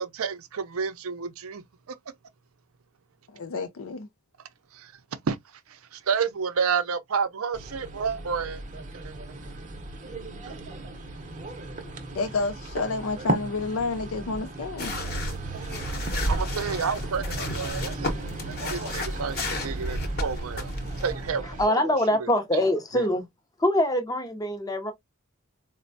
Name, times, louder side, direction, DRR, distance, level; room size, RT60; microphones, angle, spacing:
voice 1, 0.0-2.0 4.7-4.9 5.2-5.4 5.7-8.6 9.0-9.1 10.5-10.8 16.3-18.1 18.4-20.7 21.0-21.9 22.2-22.6 22.9-23.1, right 6 dB, 70° right, 0.5 m, -30 dB
voice 2, 3.3-4.1 11.8-15.0, left 3 dB, 65° left, 0.4 m, -30 dB
sound 1, 7.5-21.7, right 2 dB, 35° right, 0.7 m, -37 dB
sound 2, 14.8-21.3, equal, 45° left, 0.9 m, -32 dB
voice 3, 21.6-23.2 23.6-24.9, left 1 dB, 15° left, 0.6 m, -24 dB
4.2 x 2.2 x 2.6 m
head